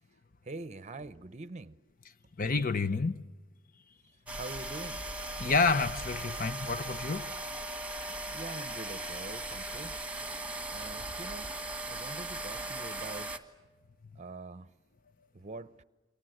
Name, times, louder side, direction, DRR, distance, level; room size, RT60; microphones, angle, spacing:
voice 1, 0.4-1.8 4.4-5.0 8.3-10.0 10.7-11.5 11.9-13.4 14.2-14.7 15.3-15.8, right 2 dB, 35° right, 0.8 m, -44 dB
voice 2, 2.4-3.2 5.4-7.3, left 4 dB, 40° left, 0.8 m, -29 dB
sound 1, 4.3-13.4, right 2 dB, 5° right, 1.4 m, -38 dB
29.5 x 24.0 x 7.8 m
head